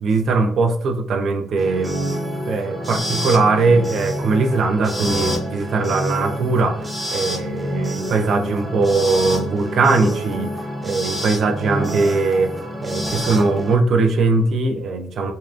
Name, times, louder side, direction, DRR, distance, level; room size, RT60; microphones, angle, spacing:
voice 1, 0.0-2.0 2.4-10.6 10.8-12.5 12.8-15.3, right 3 dB, 65° right, 6 dB, 0.4 m, -20 dB
sound 1, 1.6-13.8, equal, 10° right, 0.6 m, -27 dB
2.6 x 2.4 x 2.3 m, 0.66 s
cardioid pair, 90°, 0 cm